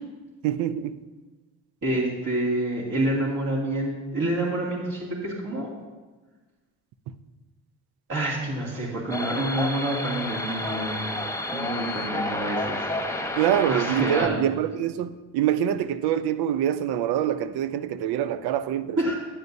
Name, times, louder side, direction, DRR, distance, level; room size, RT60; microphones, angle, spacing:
voice 1, 0.4-1.0 13.3-19.1, right 10 dB, 75° right, 14 dB, 0.6 m, -25 dB
voice 2, 1.8-5.7 8.1-11.1 11.5-13.1 13.7-14.4 19.0-19.1, right 1 dB, 55° right, -5 dB, 2.5 m, -28 dB
sound 1, 9.1-14.3, left 1 dB, 5° left, 1.1 m, -30 dB
11.0 x 9.5 x 2.7 m, 1.3 s
hypercardioid pair, 55°, 39 cm